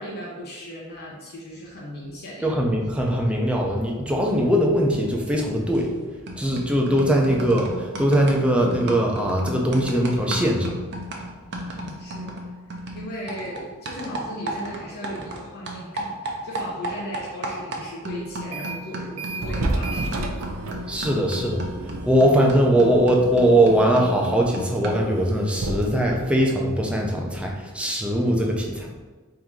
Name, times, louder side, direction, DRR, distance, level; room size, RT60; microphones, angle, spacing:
voice 1, 0.0-2.6 11.4-12.4 12.9-20.1 20.4-20.6, equal, 50° left, -5 dB, 0.8 m, -37 dB
voice 2, 2.4-5.9 6.4-10.7 20.9-28.9, right 1 dB, 5° right, -1 dB, 0.6 m, -21 dB
sound 1, 5.7-6.0 6.3-15.4 15.7-25.1, right 1 dB, 55° right, 0.7 m, -35 dB
sound 2, 18.4-18.9 19.2-27.6, right 2 dB, 90° right, 0.6 m, -32 dB
3.7 x 2.7 x 4.6 m, 1.3 s
head